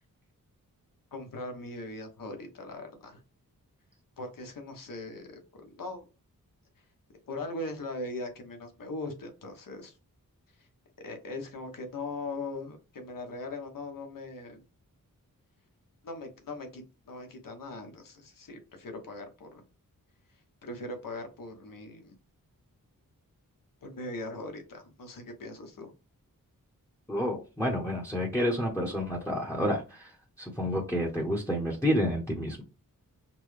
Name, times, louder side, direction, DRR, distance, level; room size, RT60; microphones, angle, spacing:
voice 1, 1.1-3.2 4.2-6.1 7.3-9.9 10.6-10.7 11.0-14.6 16.0-19.6 20.6-22.1 23.8-25.9, left 2 dB, 70° left, 4 dB, 1.2 m, -40 dB
voice 2, 27.1-30.1 30.4-32.6, equal, 10° left, 0 dB, 0.9 m, -29 dB
5.8 x 2.2 x 3.2 m, 0.31 s
wide cardioid pair, 105°, 34 cm